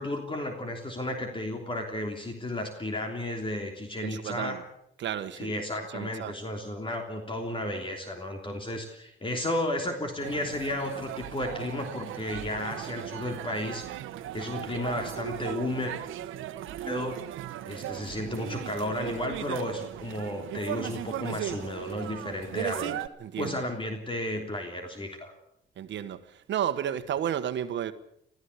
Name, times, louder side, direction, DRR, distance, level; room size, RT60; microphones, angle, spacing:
voice 1, 0.0-4.7 5.3-13.9 14.3-15.9 16.8-17.2 17.6-22.9 23.4-25.3, left 1 dB, 25° left, 3.3 m, -33 dB
voice 2, 4.0-4.6 5.0-5.5 5.9-6.3 23.2-23.6 25.8-26.2 26.5-27.9, right 9 dB, 65° right, 1.4 m, -32 dB
sound 1, 10.2-23.1, right 12 dB, 85° right, 1.2 m, -37 dB
21.0 x 15.0 x 8.4 m
cardioid pair, 90°, 20 cm